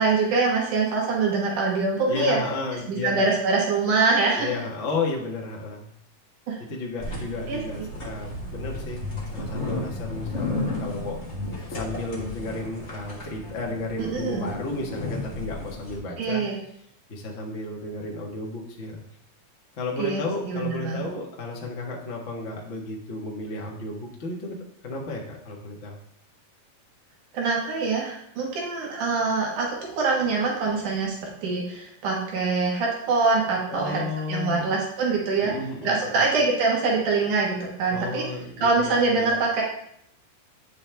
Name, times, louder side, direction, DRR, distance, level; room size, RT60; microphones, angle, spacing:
voice 1, 0.0-2.4 2.9-4.5 6.5-6.6 7.5-7.6 14.0-14.5 16.2-16.6 20.0-21.1 27.3-29.7 29.9-31.1 31.4-34.0 34.3-35.5 35.8-38.3 38.6-39.6, right 4 dB, 70° right, -2 dB, 2.8 m, -24 dB
voice 2, 2.1-3.3 4.3-5.9 6.6-9.1 9.3-11.2 11.7-16.4 17.1-19.0 19.8-26.0 33.7-34.7 35.4-36.2 37.9-39.3, left 3 dB, 80° left, -1 dB, 0.6 m, -33 dB
sound 1, 7.0-16.0, left 2 dB, 35° left, 1.1 m, -33 dB
8.9 x 6.5 x 3.4 m, 0.71 s
omnidirectional pair, 3.9 m